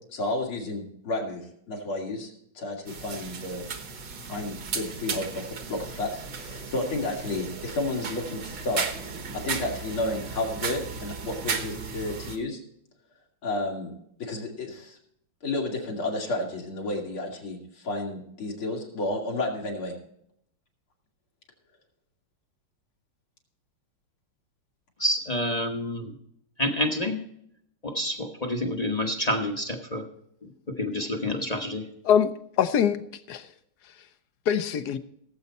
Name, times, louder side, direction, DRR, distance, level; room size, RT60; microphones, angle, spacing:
voice 1, 0.1-3.7 4.3-8.9 9.3-12.6 13.4-13.9 14.2-15.0 15.4-19.9, left 2 dB, 90° left, 3.4 m, -31 dB
sound 1, 2.9-12.4, right 5 dB, 60° right, 1.8 m, -35 dB
voice 2, 25.0-26.2 26.6-27.2 27.8-30.0 30.4-31.9, left 1 dB, 30° left, 0.8 m, -28 dB
voice 3, 32.0-33.5 34.5-35.0, left 8 dB, 65° left, 1.1 m, -24 dB
17.5 x 8.0 x 4.2 m
omnidirectional pair, 2.2 m